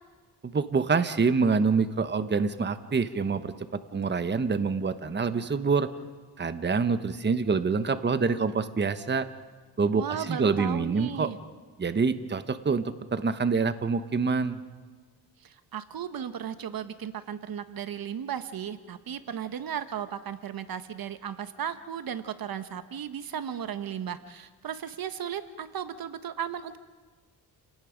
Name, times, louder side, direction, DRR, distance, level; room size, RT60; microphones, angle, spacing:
voice 1, 0.4-3.5 3.9-5.9 6.4-9.3 9.8-11.3 11.8-14.6, right 5 dB, 25° right, 10 dB, 1.1 m, -26 dB
voice 2, 9.9-11.4 15.4-26.8, right 9 dB, 60° right, 11 dB, 1.2 m, -35 dB
30.0 x 18.5 x 5.2 m, 1.4 s
cardioid pair, 80°, 41 cm